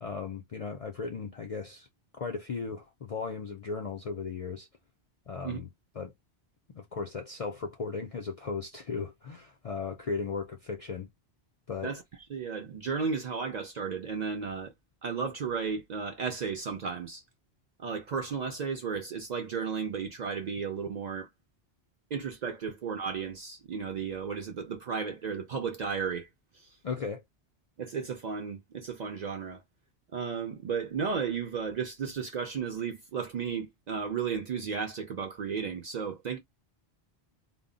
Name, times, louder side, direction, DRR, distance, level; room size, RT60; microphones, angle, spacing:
voice 1, 0.0-1.9 2.2-4.7 5.3-5.7 6.0-6.1 6.7-11.1 11.7-11.9 26.8-27.2, left 5 dB, 55° left, 0.4 m, -36 dB
voice 2, 12.3-14.7 15.0-17.2 17.8-21.3 22.1-26.3 27.8-29.6 30.1-36.4, right 6 dB, 55° right, 0.5 m, -34 dB
2.1 x 2.0 x 3.7 m
omnidirectional pair, 1.1 m